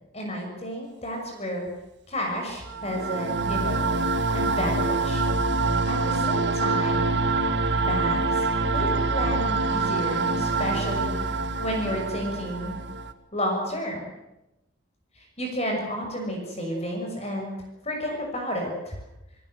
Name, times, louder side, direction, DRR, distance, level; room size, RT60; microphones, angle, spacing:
voice 1, 0.1-1.7 2.1-4.0 4.3-5.2 5.5-7.1 7.7-11.3 11.6-12.8 13.3-14.1 15.2-17.6 17.8-19.0, equal, 35° left, 2 dB, 6.3 m, -31 dB
sound 1, 2.7-13.1, right 3 dB, 65° right, 1.9 m, -25 dB
28.5 x 19.0 x 7.9 m, 0.95 s
head